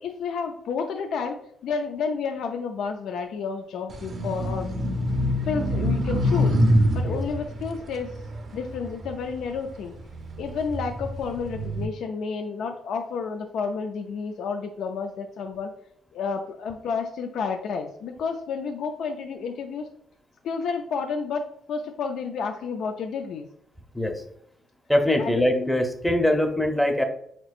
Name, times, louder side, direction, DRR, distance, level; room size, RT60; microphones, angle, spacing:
voice 1, 0.0-1.4 1.6-4.7 5.4-6.5 6.9-8.1 8.5-9.9 10.4-15.7 16.1-19.9 20.4-23.4 25.2-25.5, left 5 dB, 75° left, 4 dB, 0.4 m, -30 dB
sound 1, 3.9-9.5 10.0-11.9, equal, 50° right, 0.6 m, -25 dB
voice 2, 24.9-27.0, left 1 dB, 5° left, 5 dB, 0.7 m, -22 dB
4.4 x 4.1 x 2.4 m, 0.70 s
cardioid pair, 90°, 0 cm